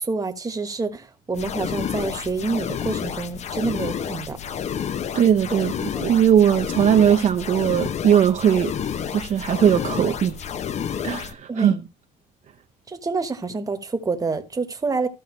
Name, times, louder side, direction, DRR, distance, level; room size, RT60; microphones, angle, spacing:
voice 1, 0.0-4.4 5.9-6.1 11.5-11.8 12.9-15.1, right 3 dB, 20° right, 1.2 m, -27 dB
sound 1, 1.3-11.3, left 8 dB, 40° left, 0.6 m, -30 dB
voice 2, 5.1-5.7 6.0-8.7 9.1-10.4 11.0-11.7, right 9 dB, 45° right, 0.7 m, -19 dB
14.0 x 5.5 x 3.1 m
cardioid pair, 110°, 17 cm